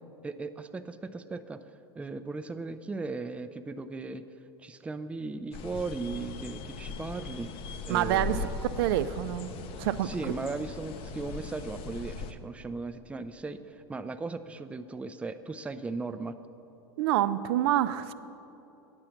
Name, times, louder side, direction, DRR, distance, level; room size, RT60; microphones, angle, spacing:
voice 1, 0.2-1.6 1.9-4.3 4.6-7.5 7.8-8.5 10.0-16.4, right 3 dB, 10° right, 10 dB, 0.4 m, -37 dB
sound 1, 5.5-12.3, left 4 dB, 45° left, 0.6 m, -39 dB
voice 2, 7.9-8.4 8.8-9.5 9.8-10.4 17.0-18.1, right 13 dB, 65° right, 13 dB, 0.5 m, -27 dB
9.7 x 7.7 x 5.7 m, 3.0 s
hypercardioid pair, 100°, 14 cm